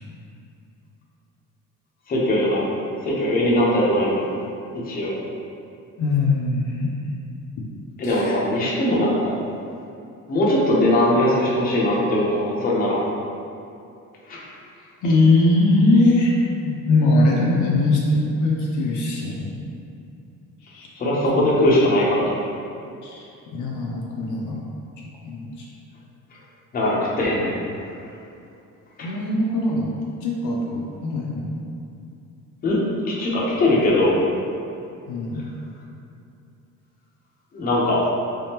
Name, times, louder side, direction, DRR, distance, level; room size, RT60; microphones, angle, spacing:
voice 1, 2.1-2.7 3.0-4.2 4.7-5.1 8.0-9.3 10.3-13.0 14.3-14.4 21.0-22.3 26.7-27.6 32.6-32.8 33.0-34.2 37.5-38.0, left 1 dB, 25° left, -5 dB, 0.6 m, -20 dB
voice 2, 6.0-6.9 8.0-8.3 15.0-16.3 16.6-19.7 20.6-20.9 21.3-21.5 23.0-24.6 25.2-25.7 29.0-29.9 30.2-31.6 35.1-35.5, left 2 dB, 65° left, -3 dB, 0.6 m, -21 dB
3.6 x 3.4 x 2.8 m, 2.6 s
cardioid pair, 160°, 32 cm